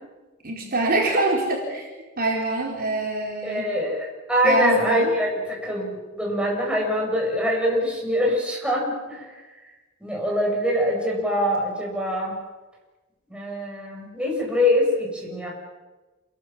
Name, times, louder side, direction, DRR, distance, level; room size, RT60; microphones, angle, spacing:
voice 1, 0.4-1.9 2.2-3.6 4.4-5.1, right 2 dB, 45° right, -1 dB, 4.5 m, -24 dB
voice 2, 3.4-9.4 10.0-12.4 13.3-15.5, left 1 dB, 5° right, -2 dB, 7.9 m, -24 dB
28.5 x 22.0 x 7.5 m, 1.2 s
head